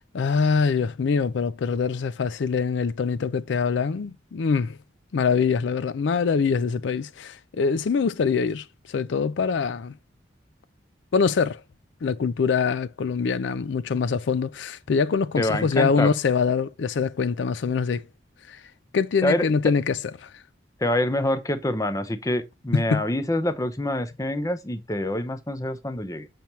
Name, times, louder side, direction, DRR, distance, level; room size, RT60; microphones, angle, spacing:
voice 1, 0.1-4.8 5.1-9.9 11.1-11.6 12.0-18.0 18.5-18.6 18.9-20.3 22.7-23.0, left 5 dB, 75° left, 0.4 m, -24 dB
voice 2, 15.3-16.1 19.2-19.7 20.8-26.3, left 1 dB, 20° left, 0.6 m, -26 dB
7.0 x 5.9 x 3.0 m
head